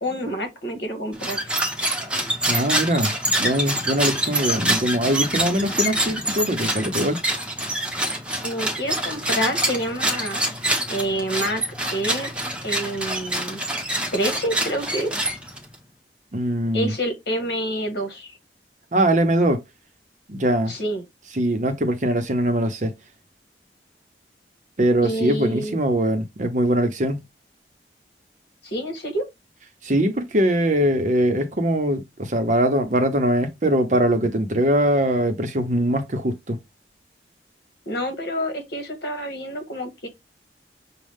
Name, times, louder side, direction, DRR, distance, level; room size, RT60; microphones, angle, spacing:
voice 1, 0.0-1.4 8.4-10.4 10.9-11.6 11.9-12.3 12.6-13.6 14.1-15.1 16.7-18.4 20.7-21.0 25.0-25.8 28.6-29.2 37.9-40.1, equal, 65° left, 1.7 m, -27 dB
sound 1, 1.1-15.8, right 1 dB, 5° right, 0.9 m, -26 dB
voice 2, 2.5-3.1 3.4-7.2 16.3-16.9 18.9-19.6 20.3-20.7 21.4-22.9 24.8-27.2 29.8-36.6, right 1 dB, 45° right, 0.8 m, -22 dB
6.4 x 2.3 x 3.5 m
head